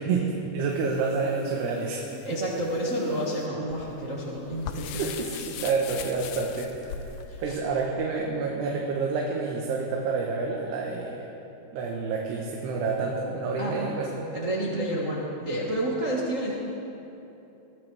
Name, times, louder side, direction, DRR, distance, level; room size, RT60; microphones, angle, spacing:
voice 1, 0.1-2.1 5.0-7.0 7.4-11.3 11.7-14.1, right 4 dB, 85° right, -1 dB, 3.2 m, -28 dB
sound 1, 0.7-7.6, left 8 dB, 90° left, 1.9 m, -41 dB
voice 2, 2.1-5.1 7.3-7.6 13.6-13.9 14.3-16.6, right 1 dB, 65° right, -6 dB, 0.7 m, -30 dB
23.0 x 14.0 x 3.5 m, 2.9 s
omnidirectional pair, 4.6 m